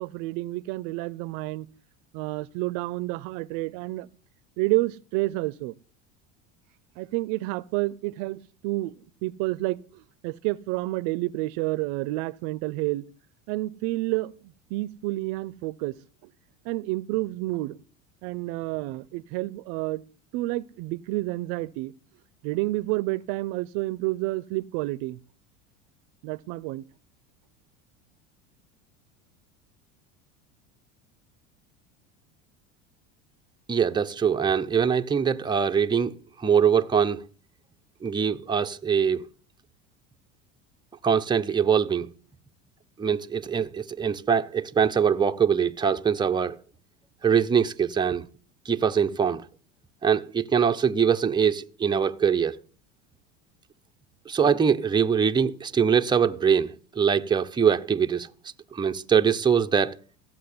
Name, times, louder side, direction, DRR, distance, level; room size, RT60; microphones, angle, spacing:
voice 1, 0.0-1.7 2.1-4.1 4.6-5.7 7.0-8.9 9.2-13.1 13.5-14.4 14.7-16.0 16.6-17.8 18.2-20.0 20.3-21.9 22.4-25.2 26.2-26.8, right 20 dB, 65° right, 0.7 m, -29 dB
voice 2, 33.7-37.3 38.0-39.3 41.0-42.1 43.0-46.6 47.2-48.3 48.6-49.5 50.0-52.6 54.3-58.3 58.7-60.0, right 7 dB, 10° right, 0.8 m, -23 dB
15.5 x 7.6 x 9.5 m
supercardioid pair, 100°, 38 cm